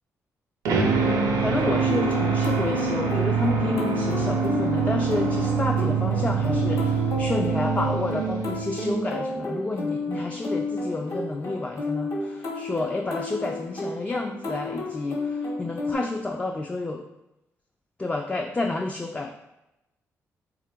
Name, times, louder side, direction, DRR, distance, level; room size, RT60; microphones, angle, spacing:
sound 1, 0.7-8.9, right 5 dB, 85° right, 0.5 m, -25 dB
voice 1, 1.0-17.0 18.0-19.3, left 2 dB, 20° left, 2 dB, 0.3 m, -30 dB
sound 2, 1.9-15.9, left 2 dB, 55° left, 0.9 m, -32 dB
3.0 x 2.5 x 4.3 m, 0.92 s
cardioid pair, 75°, 6 cm